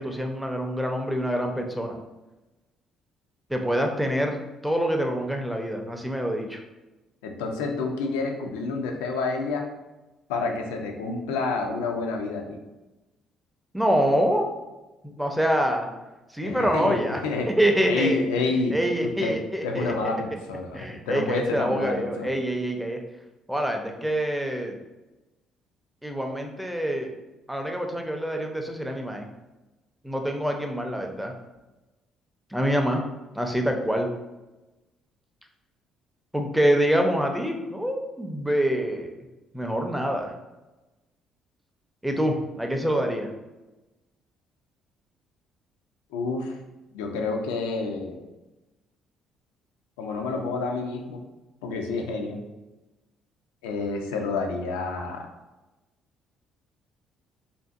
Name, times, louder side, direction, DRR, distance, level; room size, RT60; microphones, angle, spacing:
voice 1, 0.0-2.0 3.5-6.6 13.7-14.5 15.2-15.9 16.3-17.2 17.5-18.2 18.7-19.9 20.7-23.0 23.5-24.8 26.0-27.1 27.5-29.3 30.0-31.3 32.5-33.0 33.4-34.1 36.3-39.2 39.5-40.3 42.0-43.3, equal, 5° right, 3 dB, 0.5 m, -25 dB
voice 2, 7.2-9.7 10.3-12.6 16.4-17.5 17.9-19.4 19.6-22.4 46.1-46.6 46.9-48.2 50.0-51.2 51.6-52.4 53.6-55.3, left 3 dB, 80° left, 3 dB, 0.3 m, -29 dB
2.5 x 2.4 x 2.3 m, 1.1 s
hypercardioid pair, 50°, 0 cm